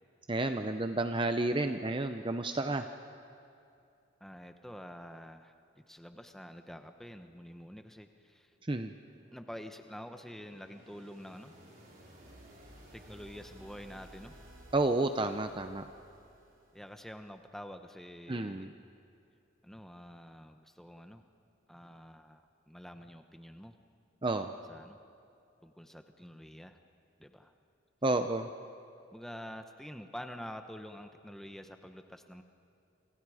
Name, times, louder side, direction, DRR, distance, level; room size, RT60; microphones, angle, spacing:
voice 1, 0.3-2.9 8.6-8.9 14.7-15.9 18.3-18.7 24.2-24.5 28.0-28.5, right 2 dB, 25° right, 7 dB, 0.6 m, -31 dB
voice 2, 4.2-5.5 5.9-8.5 9.3-11.5 12.9-14.3 16.7-18.7 19.6-21.2 21.7-23.8 24.7-25.0 25.6-26.8 27.2-27.5 29.1-32.4, equal, ahead, 6 dB, 1.0 m, -47 dB
sound 1, 8.5-17.4, right 1 dB, 45° right, 4.4 m, -57 dB
27.5 x 27.5 x 5.0 m, 2.6 s
head